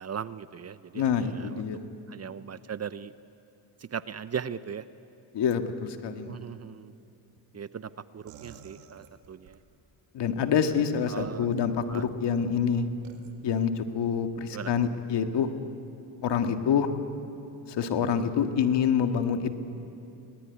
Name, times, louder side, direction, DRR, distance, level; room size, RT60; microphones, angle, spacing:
voice 1, 0.0-1.6 2.1-3.1 3.8-4.9 6.3-6.9 7.5-9.6 11.1-11.5 11.9-12.0 14.5-14.7, right 7 dB, 35° right, 15 dB, 0.7 m, -38 dB
voice 2, 0.9-1.9 5.3-6.4 10.1-12.9 13.4-15.5 16.2-16.9 17.7-19.5, left 7 dB, 65° left, 6 dB, 1.9 m, -26 dB
sound 1, 8.3-9.6 10.7-11.2 11.8-12.2 13.0-13.3, right 8 dB, 85° right, 2.0 m, -50 dB
24.0 x 19.0 x 9.7 m, 2.7 s
supercardioid pair, 75°, 46 cm